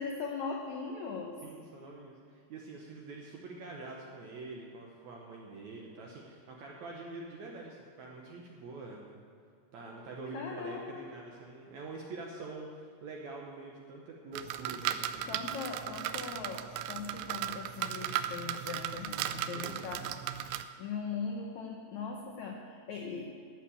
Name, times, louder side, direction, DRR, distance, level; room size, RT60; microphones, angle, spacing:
voice 1, 0.0-1.4 10.3-11.0 15.3-20.1 20.8-23.2, left 5 dB, 80° left, 1 dB, 1.6 m, -39 dB
voice 2, 1.4-9.2 9.7-15.2 19.5-19.9, right 3 dB, 70° right, -1 dB, 1.8 m, -45 dB
sound 1, 14.3-20.6, right 11 dB, 90° right, 2.6 m, -36 dB
13.5 x 6.0 x 8.5 m, 2.3 s
omnidirectional pair, 4.5 m